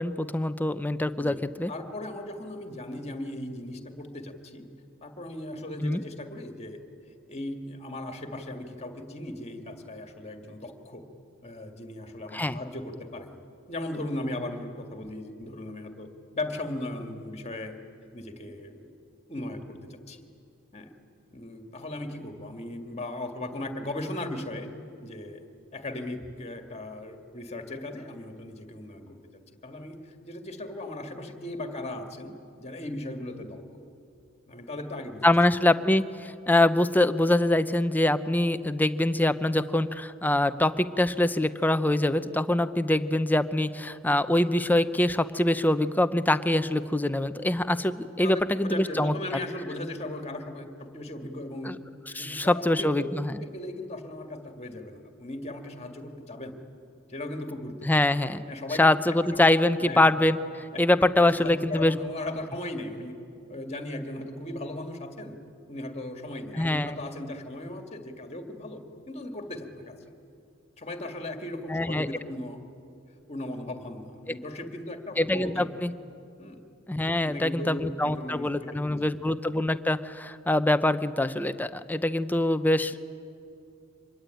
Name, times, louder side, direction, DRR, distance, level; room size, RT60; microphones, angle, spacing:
voice 1, 0.0-1.7 5.8-6.0 12.3-12.6 35.2-49.1 51.6-51.8 52.1-53.4 57.8-58.4 58.8-62.0 66.6-67.0 71.7-72.1 75.2-75.9 76.9-83.0, left 1 dB, 10° left, 11 dB, 0.7 m, -24 dB
voice 2, 1.7-4.7 5.0-6.8 7.3-11.0 11.4-13.4 13.7-17.7 18.1-18.9 19.3-20.2 20.7-20.9 21.3-24.7 25.0-25.4 25.7-29.2 29.6-33.6 34.5-35.3 48.2-51.8 52.1-53.1 53.4-56.5 57.1-57.9 58.5-59.4 59.8-60.2 60.7-63.1 63.5-65.4 65.7-70.0 70.8-72.6 73.3-75.7 76.4-76.6 77.2-79.2, left 1 dB, 30° left, 5 dB, 2.2 m, -37 dB
25.5 x 21.0 x 9.2 m, 2.6 s
head